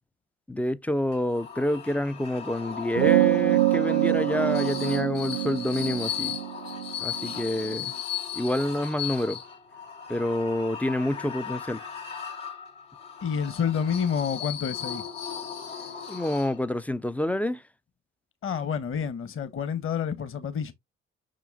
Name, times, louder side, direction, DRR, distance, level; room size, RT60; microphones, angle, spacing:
voice 1, 0.5-6.4 7.0-7.9 8.3-9.4 10.1-11.8 16.1-17.6, left 1 dB, 5° left, 0.4 m, -28 dB
sound 1, 1.1-16.9, left 7 dB, 75° left, 1.7 m, -37 dB
sound 2, 3.0-7.8, right 16 dB, 60° right, 0.6 m, -25 dB
voice 2, 13.2-15.0 18.4-20.7, left 7 dB, 35° left, 1.1 m, -28 dB
6.2 x 6.1 x 2.6 m
figure-of-eight pair, 50°, 35 cm